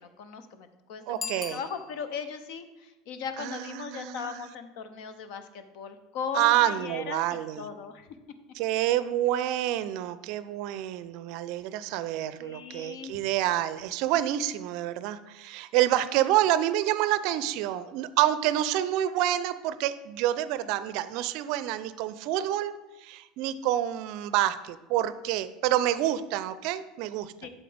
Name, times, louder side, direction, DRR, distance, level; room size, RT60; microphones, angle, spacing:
voice 1, 0.0-7.2 7.6-8.1 12.4-13.2 27.4-27.5, left 6 dB, 60° left, 10 dB, 0.8 m, -38 dB
Bicycle bell, 1.1-2.4, left 6 dB, 25° left, 0.6 m, -39 dB
voice 2, 1.1-1.6 3.4-4.4 6.3-7.7 8.5-22.7 23.0-27.3, right 13 dB, 60° right, 14 dB, 0.4 m, -28 dB
8.4 x 7.3 x 3.4 m, 1.1 s
hypercardioid pair, 75°, 0 cm